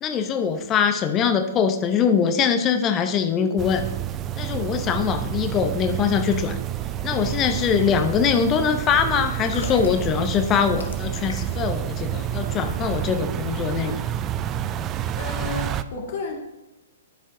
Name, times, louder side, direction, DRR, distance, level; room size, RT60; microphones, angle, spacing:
voice 1, 0.0-3.8 4.4-6.6 7.0-14.0, left 7 dB, 25° left, 7 dB, 0.6 m, -22 dB
sound 1, 3.6-15.8, right 11 dB, 25° right, 0.3 m, -29 dB
sound 2, 9.4-11.7 12.0-12.2, left 4 dB, 70° left, 0.9 m, -39 dB
voice 2, 15.2-16.3, left 5 dB, 50° left, 2 dB, 1.7 m, -32 dB
12.0 x 5.1 x 2.6 m, 1.0 s
figure-of-eight pair, 115°, 0 cm